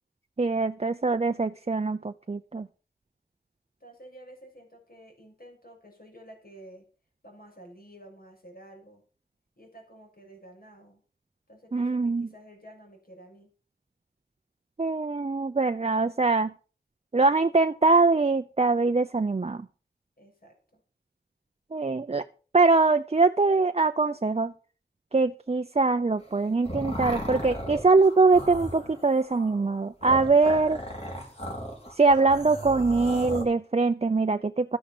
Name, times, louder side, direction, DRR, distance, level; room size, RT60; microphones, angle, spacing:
voice 1, 0.4-2.7 11.7-12.3 14.8-16.5 17.1-19.7 21.7-22.2 22.5-24.5 25.1-30.8 32.0-34.8, right 3 dB, 35° right, 8 dB, 0.6 m, -23 dB
voice 2, 3.8-6.9 7.2-9.0 9.6-11.0 11.5-13.5 20.2-20.8, right 1 dB, 55° left, 2 dB, 6.4 m, -50 dB
sound 1, 26.2-33.4, equal, 35° left, 4.9 m, -36 dB
13.0 x 10.0 x 6.1 m, 0.38 s
wide cardioid pair, 65°, 18 cm